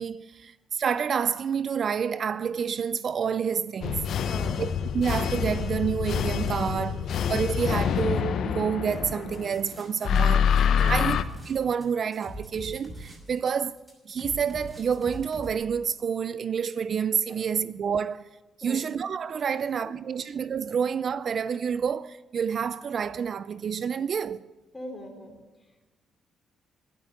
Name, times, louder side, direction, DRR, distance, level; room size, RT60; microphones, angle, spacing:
voice 1, 0.0-4.0 4.6-4.7 4.9-11.2 11.5-13.8 14.1-18.3 18.6-24.5, right 7 dB, 55° right, 0.3 m, -28 dB
sound 1, 3.8-9.6 10.0-11.2, left 7 dB, 65° left, 0.6 m, -26 dB
voice 2, 4.1-4.6 10.8-11.0 17.3-17.4 18.6-18.9 19.5-20.2 24.7-25.9, left 1 dB, 15° left, 3.5 m, -43 dB
sound 2, 8.9-10.2 10.5-15.5, equal, 5° right, 5.9 m, -42 dB
11.5 x 9.6 x 8.0 m
cardioid pair, 90°, 0 cm